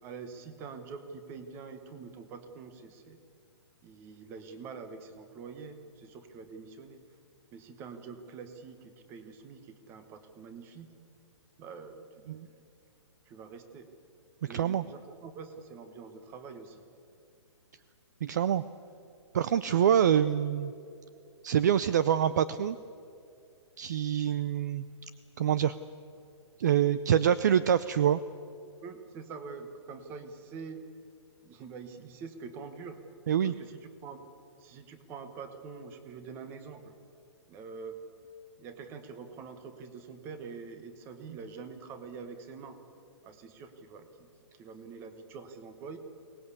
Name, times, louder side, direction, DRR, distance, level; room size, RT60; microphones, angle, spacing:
voice 1, 0.0-3.2 3.8-7.0 7.5-10.9 11.6-12.6 13.2-13.9 14.4-16.8 28.8-30.9 31.4-33.0 33.4-34.2 34.6-36.9 37.5-38.0 38.6-42.8 43.2-46.0, right 5 dB, 15° right, 9 dB, 1.1 m, -45 dB
voice 2, 14.4-14.8 18.2-18.6 19.3-20.7 21.4-22.8 23.8-24.9 25.4-25.7 26.6-28.2 33.3-33.5, right 9 dB, 35° right, 15 dB, 0.4 m, -25 dB
23.0 x 19.0 x 8.3 m, 2.5 s
hypercardioid pair, 170°, 15 cm